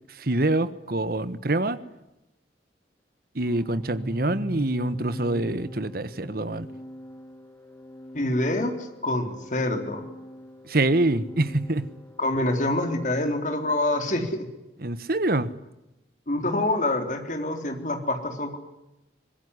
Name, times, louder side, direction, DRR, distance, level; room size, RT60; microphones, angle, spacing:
voice 1, 0.1-1.8 3.3-6.7 10.6-11.9 14.8-15.5, right 2 dB, 55° right, 14 dB, 1.3 m, -25 dB
Organ, 3.5-14.2, right 1 dB, 15° left, 2.3 m, -41 dB
voice 2, 8.1-8.7 9.0-10.0 12.2-14.5 16.3-18.6, left 1 dB, 45° left, 5 dB, 3.8 m, -26 dB
24.5 x 21.5 x 9.8 m, 0.94 s
head